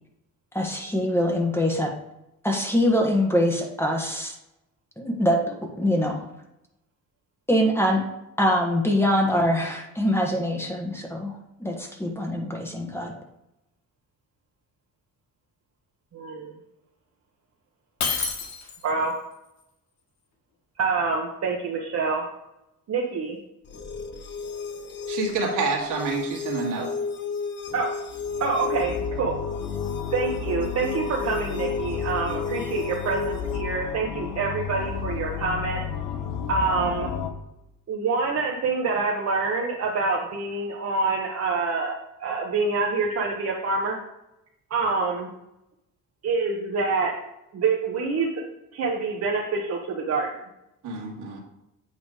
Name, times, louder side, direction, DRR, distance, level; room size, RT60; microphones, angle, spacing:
voice 1, 0.5-1.9 2.4-4.3 5.0-6.2 7.5-8.0 8.4-11.3 11.6-13.1, equal, 5° left, 1 dB, 1.4 m, -24 dB
voice 2, 16.1-16.5 18.8-19.1 20.8-22.2 22.9-23.4 27.7-27.9 28.4-29.4 30.1-35.8 36.5-37.1 37.9-44.0 44.7-45.3 46.2-47.1 47.5-48.3 48.7-50.3, right 4 dB, 50° right, -1 dB, 1.1 m, -26 dB
Shatter, 18.0-19.0, left 5 dB, 60° left, 1.6 m, -28 dB
sound 1, 23.7-33.7, left 5 dB, 35° left, 0.7 m, -33 dB
voice 3, 25.1-26.9 50.8-51.4, right 4 dB, 75° right, -2 dB, 2.0 m, -28 dB
sound 2, 28.1-37.3, left 7 dB, 80° left, 1.0 m, -33 dB
8.3 x 3.3 x 5.0 m, 0.89 s
cardioid pair, 95°, 32 cm